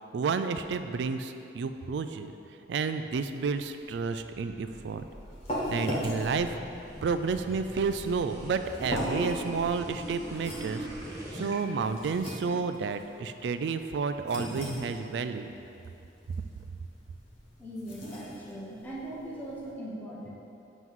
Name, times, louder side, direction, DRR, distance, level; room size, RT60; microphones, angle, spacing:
voice 1, 0.1-2.3 2.7-5.0 5.7-6.6 7.0-10.9 11.3-15.5, right 5 dB, 65° right, 9 dB, 0.3 m, -31 dB
sound 1, 4.7-19.7, equal, 35° left, 1.3 m, -38 dB
sound 2, 4.7-11.5, right 1 dB, 20° right, 1.1 m, -43 dB
voice 2, 17.6-20.3, right 1 dB, 10° left, -6 dB, 0.8 m, -40 dB
7.8 x 3.0 x 5.5 m, 2.8 s
head